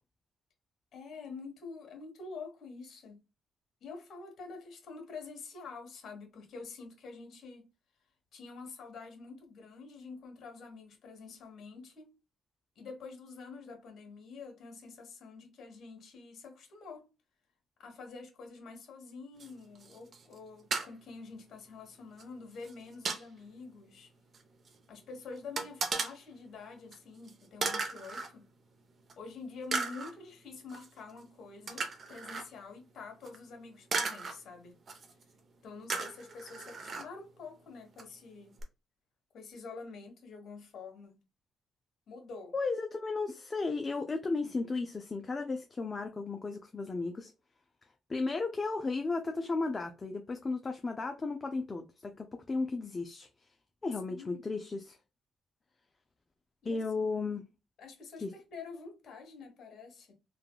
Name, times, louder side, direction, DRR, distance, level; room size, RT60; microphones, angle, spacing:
voice 1, 0.9-3.2 3.8-7.7 8.3-12.1 12.8-17.1 17.8-24.1 24.9-28.5 29.2-34.8 35.6-38.5 39.3-41.2 42.1-42.5 54.1-54.5 56.6-56.8 57.8-60.1, left 4 dB, 65° left, 1.2 m, -47 dB
sound 1, 19.4-19.5 19.8-20.4 20.7-20.9 22.2-22.3 22.6-23.2 24.3-24.4 24.7-24.8 25.6-26.1 26.9-27.0 27.3-27.4 27.6-28.3 29.1-29.2 29.7-30.1 30.7-30.9 31.7-32.5 33.2-33.4 33.9-34.3 34.9-35.2 35.9-37.1 38.0-38.1 38.6-38.7, right 4 dB, 50° right, 0.7 m, -35 dB
voice 2, 42.5-47.3 48.1-53.3 53.8-55.0 56.6-57.4 58.2-58.3, left 3 dB, 30° left, 0.4 m, -34 dB
3.3 x 2.2 x 2.2 m
cardioid pair, 90°, 0 cm